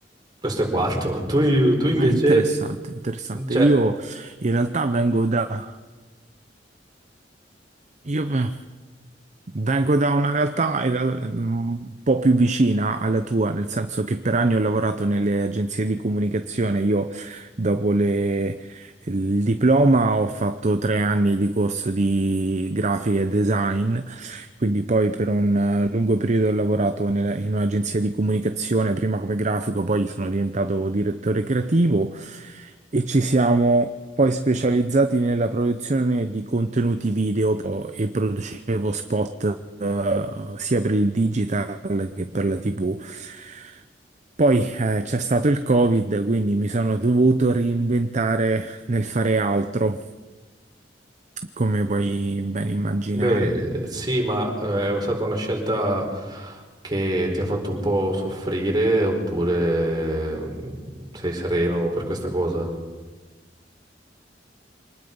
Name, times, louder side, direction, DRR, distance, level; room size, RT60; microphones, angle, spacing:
voice 1, 0.4-2.4 3.3-3.7 53.1-62.7, right 1 dB, 25° right, 1 dB, 4.6 m, -23 dB
voice 2, 2.0-5.8 8.0-8.6 9.5-43.8 44.4-50.0 51.6-53.5, right 2 dB, 40° right, 9 dB, 0.7 m, -23 dB
25.5 x 19.5 x 5.4 m, 1.3 s
head